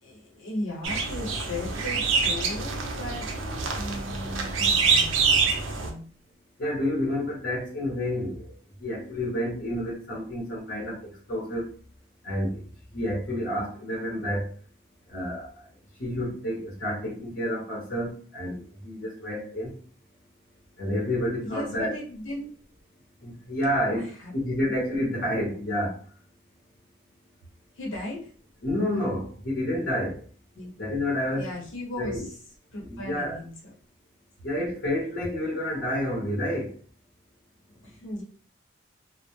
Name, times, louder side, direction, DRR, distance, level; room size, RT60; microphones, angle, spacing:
voice 1, 0.0-3.3 3.7-5.5 5.8-6.0 21.4-22.5 24.0-24.3 27.7-28.3 30.5-30.7 31.4-32.4 32.7-33.5 37.7-38.2, left 1 dB, 80° left, -3 dB, 1.0 m, -36 dB
sound 1, 0.8-5.9, right 5 dB, 80° right, 0.5 m, -26 dB
voice 2, 6.6-8.5 8.8-11.7 12.2-12.6 12.9-14.5 15.1-15.5 16.0-19.7 20.8-21.9 23.2-26.0 28.6-30.2 30.8-31.5 32.0-32.3 32.8-33.4 34.4-36.7, left 1 dB, 55° left, -4 dB, 0.7 m, -29 dB
2.1 x 2.1 x 2.9 m, 0.43 s
head